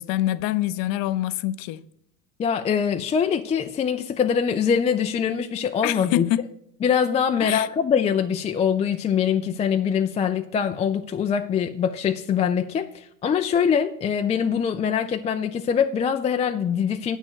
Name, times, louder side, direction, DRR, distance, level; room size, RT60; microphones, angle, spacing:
voice 1, 0.0-1.8 5.8-6.5 7.4-7.7, left 14 dB, 50° left, 0.7 m, -25 dB
voice 2, 2.4-6.3 6.8-17.2, left 7 dB, 15° left, 0.3 m, -23 dB
8.3 x 6.4 x 6.4 m
hypercardioid pair, 80°, 45 cm